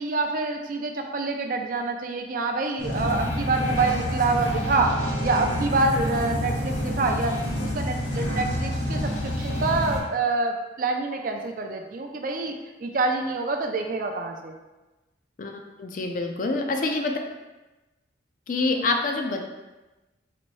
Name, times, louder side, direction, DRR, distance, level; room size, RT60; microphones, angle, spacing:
voice 1, 0.0-14.5, right 3 dB, 50° right, 4 dB, 0.4 m, -26 dB
sound 1, 2.8-10.0, left 1 dB, 85° left, 1.0 m, -28 dB
voice 2, 15.8-17.1 18.5-19.5, left 3 dB, 45° left, 3 dB, 0.4 m, -26 dB
4.1 x 2.6 x 3.1 m, 1.1 s
head